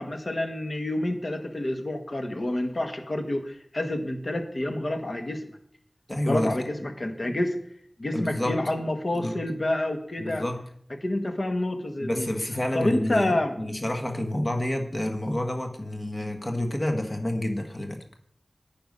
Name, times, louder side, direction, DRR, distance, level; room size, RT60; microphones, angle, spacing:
voice 1, 0.0-5.5 6.2-7.6 8.0-10.4 11.0-12.3 12.7-13.5, left 1 dB, 65° left, 7 dB, 1.5 m, -28 dB
voice 2, 6.1-6.5 8.1-8.6 9.1-9.3 10.2-10.6 12.0-18.0, left 1 dB, 40° left, 4 dB, 1.6 m, -29 dB
10.5 x 9.0 x 5.4 m, 0.65 s
wide cardioid pair, 50°, 0 cm